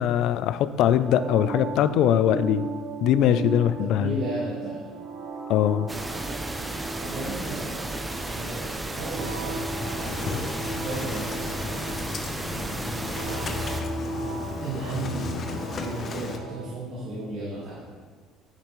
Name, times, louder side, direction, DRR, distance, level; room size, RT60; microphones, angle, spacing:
voice 1, 0.0-2.7 3.0-4.2 5.5-5.9, left 10 dB, 65° left, 13 dB, 0.3 m, -22 dB
sound 1, 0.8-16.7, right 4 dB, 75° right, 1.0 m, -37 dB
voice 2, 3.8-4.8 7.0-9.5 10.0-11.9 12.3-13.6 14.6-17.8, right 2 dB, 55° right, -7 dB, 1.6 m, -35 dB
sound 2, 5.9-13.8, right 1 dB, 10° right, 0.4 m, -33 dB
Engine starting, 9.5-16.4, left 4 dB, 35° left, 0.6 m, -35 dB
9.6 x 6.7 x 3.1 m, 1.5 s
cardioid pair, 140°, 0 cm